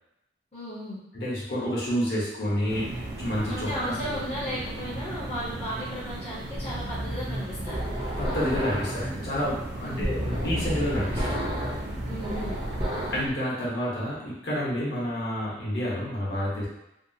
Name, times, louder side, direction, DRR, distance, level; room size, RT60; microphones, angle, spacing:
voice 1, 0.5-1.0 3.5-7.8 9.8-10.1 12.1-12.6, equal, 35° left, -9 dB, 0.6 m, -35 dB
voice 2, 1.1-3.9 8.2-11.7 13.1-16.7, equal, 60° left, -7 dB, 0.9 m, -29 dB
sound 1, 2.7-13.3, right 1 dB, 70° right, 0.5 m, -37 dB
sound 2, 6.5-13.3, equal, 25° right, 0.6 m, -31 dB
2.7 x 2.3 x 2.6 m, 0.87 s
head